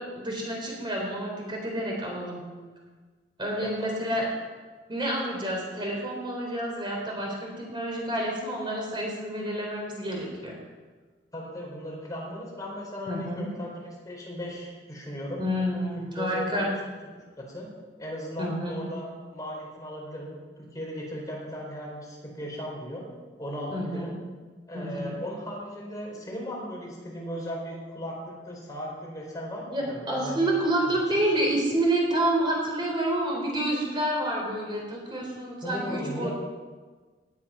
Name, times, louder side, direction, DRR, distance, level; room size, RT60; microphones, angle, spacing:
voice 1, 0.0-2.4 3.4-4.3 4.9-10.5 13.1-13.5 15.4-16.7 18.4-18.8 23.7-24.1 24.7-25.1 29.7-36.3, right 1 dB, 30° right, -1 dB, 4.0 m, -29 dB
voice 2, 3.6-4.3 11.3-15.4 16.0-16.6 17.4-17.7 18.0-23.0 23.4-24.1 24.7-30.5 30.9-31.0 35.6-36.3, equal, 20° left, -2 dB, 4.4 m, -37 dB
18.5 x 12.0 x 5.8 m, 1.4 s
head